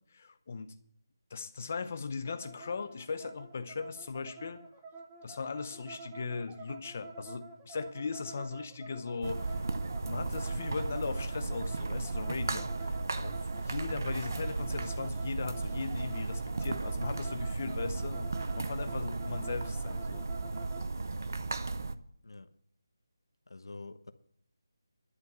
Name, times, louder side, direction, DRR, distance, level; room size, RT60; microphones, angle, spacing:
voice 1, 0.1-0.7 1.3-4.6 5.2-9.7 10.1-20.2, left 4 dB, 25° left, 0.7 m, -38 dB
sound 1, 2.2-20.9, right 4 dB, 10° right, 0.6 m, -48 dB
sound 2, 9.2-22.0, right 3 dB, 45° right, 0.7 m, -35 dB
voice 2, 22.2-22.5 23.5-24.1, left 3 dB, 80° left, 1.1 m, -47 dB
11.0 x 7.0 x 8.7 m
figure-of-eight pair, 180°, 2 cm